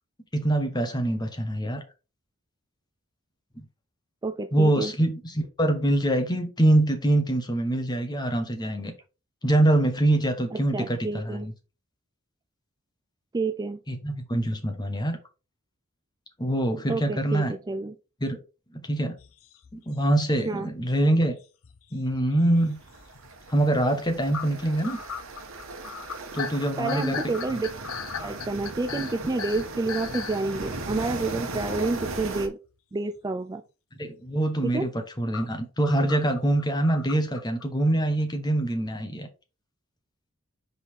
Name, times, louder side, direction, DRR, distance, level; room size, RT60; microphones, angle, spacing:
voice 1, 0.3-1.8 3.6-3.7 4.5-8.9 9.4-11.5 13.9-15.2 16.4-17.5 18.2-18.4 18.7-19.2 19.7-21.4 21.9-22.8 23.5-25.0 26.3-27.3 28.9-29.0 34.0-34.9 35.2-39.3, right 1 dB, 20° left, 5 dB, 1.2 m, -24 dB
voice 2, 4.2-4.9 10.5-11.5 13.3-13.8 16.9-17.9 20.4-20.7 26.8-27.7 28.2-32.6 32.9-33.6 34.6-34.9, right 3 dB, 20° right, 7 dB, 0.3 m, -29 dB
sound 1, 19.2-20.9 21.2-22.7 23.1-23.3 23.6-23.7 24.3-30.4 31.2-31.3 33.2-33.3 35.3-37.6, left 7 dB, 70° left, 0.6 m, -38 dB
sound 2, 22.6-32.5, right 3 dB, 65° right, 1.3 m, -38 dB
5.4 x 4.0 x 4.6 m, 0.31 s
head